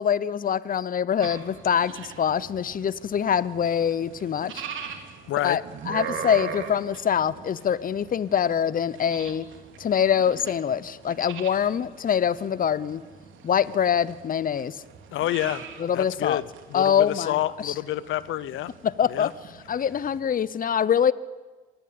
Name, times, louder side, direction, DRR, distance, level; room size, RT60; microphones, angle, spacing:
voice 1, 0.0-4.6 5.4-5.6 5.9-9.5 9.8-13.0 13.4-14.8 15.8-16.4 16.7-17.4 17.6-17.7 18.8-19.3 19.7-21.1, left 8 dB, 45° left, 18 dB, 0.9 m, -24 dB
sound 1, 1.2-20.2, right 7 dB, 75° right, 3.4 m, -41 dB
voice 2, 5.3-5.6 15.1-15.6 15.9-18.7 19.1-19.3, left 14 dB, 80° left, 18 dB, 0.7 m, -28 dB
26.0 x 19.0 x 8.7 m, 1.3 s
cardioid pair, 90°, 20 cm